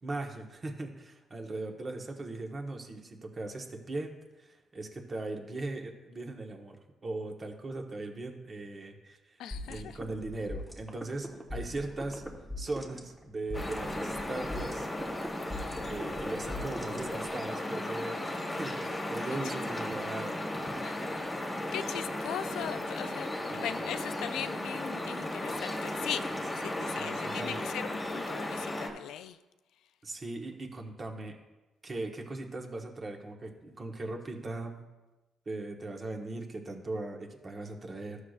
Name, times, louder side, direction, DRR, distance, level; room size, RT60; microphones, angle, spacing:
voice 1, 0.0-9.4 9.7-12.2 12.6-14.9 15.8-18.2 18.5-20.4 23.5-23.7 26.8-27.6 30.0-31.4 31.8-34.8 35.5-38.2, right 2 dB, 35° right, 3 dB, 1.2 m, -39 dB
voice 2, 9.4-10.0 20.8-21.2 21.7-29.4, left 10 dB, 85° left, 12 dB, 0.3 m, -39 dB
sound 1, 9.5-17.5, left 1 dB, 5° right, 1.1 m, -42 dB
sound 2, 13.5-28.9, left 1 dB, 20° left, 1.5 m, -35 dB
12.5 x 6.4 x 2.5 m, 1.1 s
cardioid pair, 90°, 0 cm